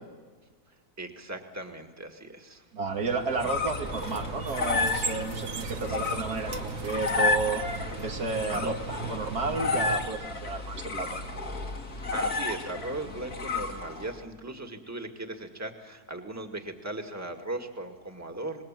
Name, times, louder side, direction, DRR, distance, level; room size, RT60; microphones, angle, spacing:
voice 1, 1.0-2.7 5.9-6.0 8.5-8.8 12.1-18.6, right 2 dB, 10° right, 4 dB, 1.9 m, -38 dB
voice 2, 2.7-7.6 8.0-11.2, right 4 dB, 90° right, 3 dB, 2.7 m, -32 dB
sound 1, 3.0-14.2, left 4 dB, 75° left, 3.0 m, -32 dB
sound 2, 3.8-10.1, right 5 dB, 60° right, 1.6 m, -37 dB
26.5 x 20.5 x 7.6 m, 1.5 s
omnidirectional pair, 1.6 m